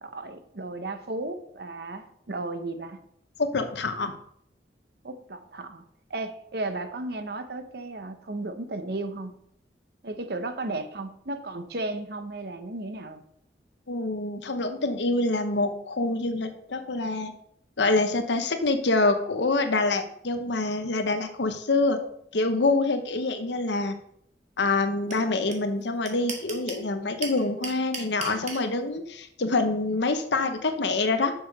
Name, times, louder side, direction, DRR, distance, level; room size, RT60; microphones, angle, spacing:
voice 1, 0.0-3.0 5.0-5.8 6.1-9.4 10.0-13.2, right 2 dB, 60° right, 9 dB, 0.9 m, -34 dB
voice 2, 3.4-4.1 13.9-17.3 17.8-22.0 22.3-24.0 24.6-31.3, left 3 dB, 75° left, 8 dB, 1.0 m, -26 dB
sound 1, 25.1-25.2 25.5-25.6 25.8-26.8 27.2-28.6, right 4 dB, 40° right, 1.7 m, -34 dB
7.0 x 6.4 x 5.3 m, 0.71 s
head